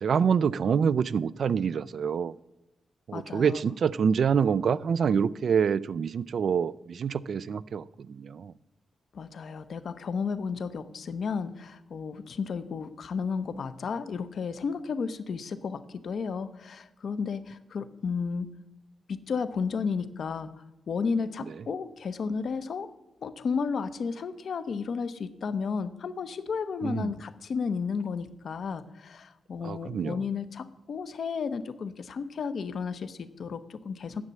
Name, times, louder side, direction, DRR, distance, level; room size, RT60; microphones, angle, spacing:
voice 1, 0.0-2.3 3.1-8.5 26.8-27.1 29.6-30.2, right 7 dB, 60° right, 18 dB, 0.4 m, -26 dB
voice 2, 3.1-3.6 9.1-18.5 19.1-20.5 20.9-22.9 23.2-34.2, left 5 dB, 55° left, 12 dB, 0.8 m, -33 dB
9.6 x 7.4 x 9.3 m, 0.99 s
wide cardioid pair, 150°, 0 cm